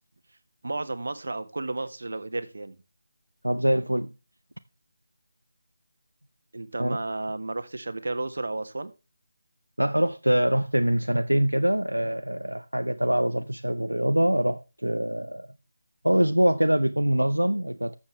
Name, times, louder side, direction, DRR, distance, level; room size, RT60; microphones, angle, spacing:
voice 1, 0.6-2.8 6.5-8.9 16.1-16.3, right 2 dB, 60° right, 1.5 m, -32 dB
voice 2, 3.4-4.1 6.8-7.0 9.8-15.5 16.0-18.0, right 1 dB, 90° right, 0.7 m, -24 dB
13.0 x 7.3 x 3.2 m
figure-of-eight pair, 160°, 0 cm